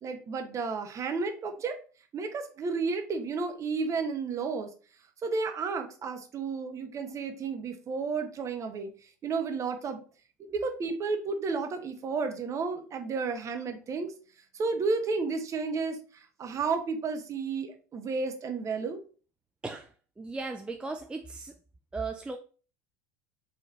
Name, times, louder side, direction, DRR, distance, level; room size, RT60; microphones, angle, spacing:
voice 1, 0.0-1.8 2.1-4.7 5.2-10.0 10.4-14.1 14.5-19.0, right 4 dB, 35° right, 5 dB, 0.9 m, -32 dB
voice 2, 20.2-21.5 21.9-22.4, right 3 dB, 10° right, 4 dB, 0.4 m, -36 dB
4.2 x 2.9 x 4.0 m, 0.38 s
figure-of-eight pair, 70°, 9 cm